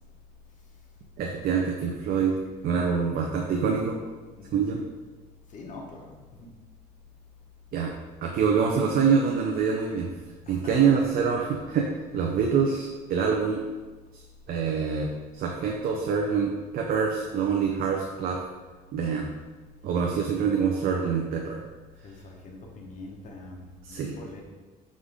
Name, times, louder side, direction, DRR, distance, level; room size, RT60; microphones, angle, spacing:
voice 1, 1.2-2.4 2.6-3.9 4.5-4.8 7.7-7.9 8.2-10.1 10.5-11.9 12.1-13.6 14.1-14.2 14.5-15.1 15.3-18.4 18.9-19.3 19.8-21.6 23.8-24.1, right 6 dB, 60° right, 0 dB, 0.5 m, -25 dB
voice 2, 2.4-2.9 4.4-4.7 5.5-6.5 10.5-11.2 22.0-24.4, left 3 dB, 50° left, 0 dB, 0.9 m, -43 dB
5.0 x 2.5 x 3.5 m, 1.3 s
cardioid pair, 110°, 17 cm